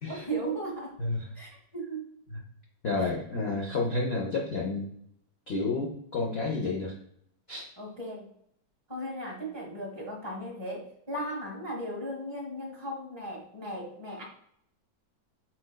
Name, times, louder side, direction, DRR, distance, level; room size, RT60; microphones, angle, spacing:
voice 1, 0.0-1.0 1.3-2.1 3.5-3.6 7.8-8.3 8.9-14.2, right 1 dB, 15° right, -2 dB, 1.1 m, -36 dB
voice 2, 2.8-4.8 5.5-6.9 7.5-7.7, left 3 dB, 65° left, -2 dB, 0.6 m, -30 dB
4.5 x 4.3 x 2.2 m, 0.70 s
omnidirectional pair, 1.9 m